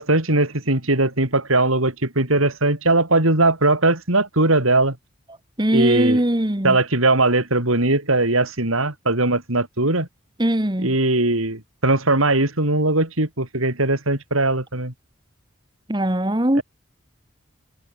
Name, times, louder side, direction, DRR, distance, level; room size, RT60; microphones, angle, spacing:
voice 1, 0.0-5.0 5.7-6.2 6.6-10.1 10.8-14.9 16.5-16.6, right 2 dB, 90° right, 5.4 m, -20 dB
voice 2, 5.6-6.8 10.4-10.9 15.9-16.6, right 1 dB, 20° right, 1.5 m, -20 dB
head